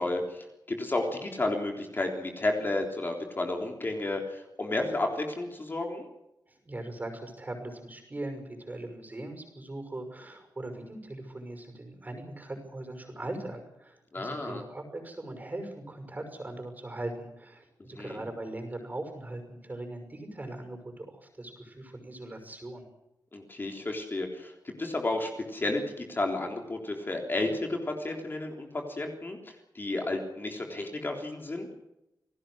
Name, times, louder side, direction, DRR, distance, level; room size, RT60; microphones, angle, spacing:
voice 1, 0.0-6.0 14.1-14.6 17.9-18.2 23.3-31.7, left 2 dB, 30° left, 2 dB, 3.5 m, -32 dB
voice 2, 6.5-22.9, right 1 dB, 25° right, 6 dB, 5.9 m, -40 dB
28.5 x 18.5 x 6.4 m, 0.89 s
wide cardioid pair, 155°, 7 cm